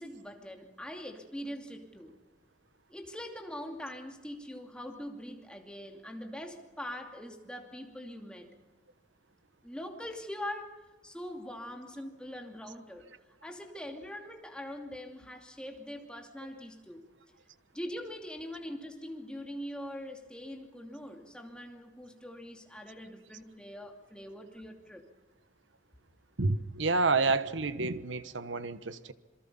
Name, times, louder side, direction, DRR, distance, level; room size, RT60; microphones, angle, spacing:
voice 1, 0.0-2.1 2.9-8.5 9.6-13.1 13.4-17.1 17.7-25.0, left 1 dB, 5° left, 2.7 m, -42 dB
voice 2, 26.4-29.1, right 3 dB, 85° right, 1.2 m, -29 dB
27.0 x 23.5 x 5.5 m
head